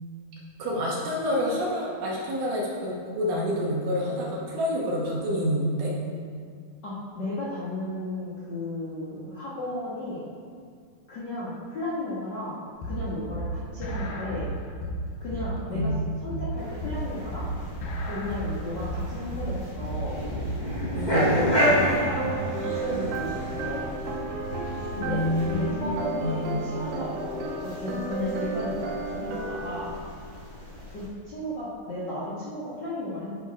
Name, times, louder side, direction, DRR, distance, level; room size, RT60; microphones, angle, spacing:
voice 1, 0.6-5.9 15.7-16.0 20.9-21.3 25.0-26.6, equal, 65° right, -4 dB, 2.7 m, -28 dB
voice 2, 6.8-10.2 11.1-12.6 12.8-14.5 15.2-15.9 16.2-17.5 18.0-20.1 21.1-24.0 24.9-29.9 30.9-33.3, left 1 dB, 90° left, -9 dB, 0.9 m, -34 dB
sound 1, 12.8-20.9, right 1 dB, 70° left, 2.5 m, -32 dB
sound 2, 16.6-31.1, equal, 50° left, 0.5 m, -31 dB
sound 3, 22.2-29.8, right 3 dB, 85° right, 2.7 m, -33 dB
10.0 x 4.3 x 4.7 m, 2.1 s
omnidirectional pair, 4.4 m